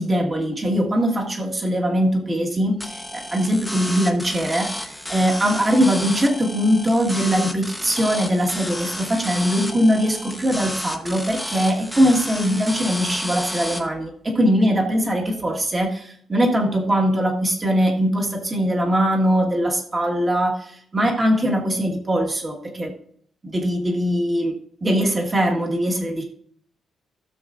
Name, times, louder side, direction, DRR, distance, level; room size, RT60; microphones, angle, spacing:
voice 1, 0.0-22.9 23.4-24.5 24.8-26.2, equal, 20° right, 1 dB, 1.6 m, -21 dB
sound 1, 2.8-13.8, left 1 dB, ahead, 1.0 m, -31 dB
16.0 x 7.2 x 2.5 m, 0.63 s
cardioid pair, 170°, 0 cm